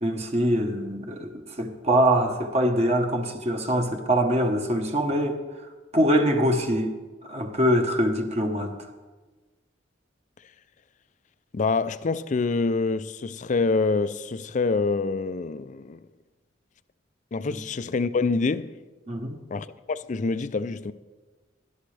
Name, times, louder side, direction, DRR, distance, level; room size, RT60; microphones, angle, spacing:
voice 1, 0.0-1.3 1.6-5.4 5.9-7.0 7.2-8.7 17.5-17.6 19.1-19.4, equal, 35° right, 1.2 m, -23 dB
voice 2, 11.5-16.0 17.3-18.7 19.5-20.9, left 4 dB, 40° left, 0.4 m, -26 dB
17.5 x 11.5 x 3.4 m
head